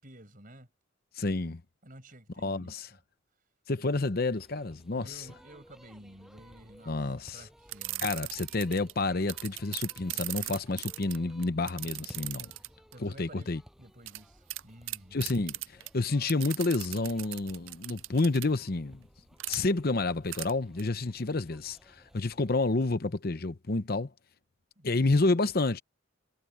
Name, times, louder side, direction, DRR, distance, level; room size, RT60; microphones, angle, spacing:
voice 1, 0.0-0.7 1.8-3.0 3.7-4.0 4.9-8.2 11.7-11.9 12.9-13.5 13.8-15.3 24.8-25.1, right 1 dB, 40° right, 6.0 m, -52 dB
voice 2, 1.2-1.6 2.4-2.8 3.7-5.1 6.9-7.4 8.0-12.5 13.0-13.6 15.1-15.5 15.9-19.0 19.5-24.1 24.8-25.8, left 3 dB, 50° left, 0.8 m, -29 dB
sound 1, 4.3-22.8, equal, ahead, 6.0 m, -57 dB
Clicking Dial Barrel Spin, 7.7-8.9 9.3-12.9 14.1-14.2 14.5-14.6 14.9-15.9 16.3-18.5 19.4-19.6 20.3-20.5 20.8-20.9, right 18 dB, 70° right, 0.4 m, -37 dB
head